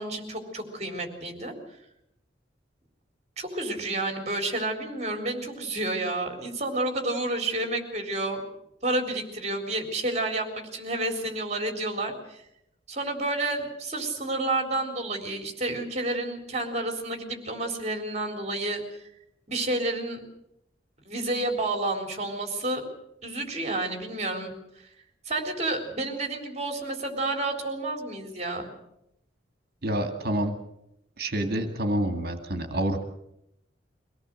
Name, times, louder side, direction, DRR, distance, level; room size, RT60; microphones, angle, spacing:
voice 1, 0.0-1.5 3.4-8.4 8.8-12.4 12.9-19.0 19.5-20.2 21.1-22.8 23.2-24.5 25.3-28.6, right 2 dB, 40° right, 4 dB, 3.9 m, -30 dB
voice 2, 29.8-30.5 31.2-33.0, right 1 dB, 55° right, 6 dB, 2.3 m, -27 dB
24.0 x 17.5 x 7.7 m, 0.83 s
head